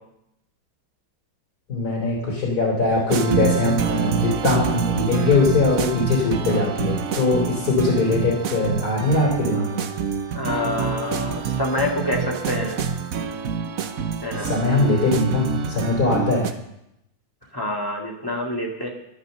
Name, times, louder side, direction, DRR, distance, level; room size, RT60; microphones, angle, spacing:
voice 1, 1.7-9.8 14.4-16.5, left 3 dB, 45° left, -2 dB, 3.7 m, -21 dB
sound 1, 3.1-16.5, right 7 dB, 55° right, 1.0 m, -26 dB
voice 2, 10.3-12.8 14.2-14.5 17.5-18.9, left 2 dB, 10° left, -1 dB, 2.2 m, -27 dB
12.0 x 11.5 x 6.7 m, 0.83 s
omnidirectional pair, 2.3 m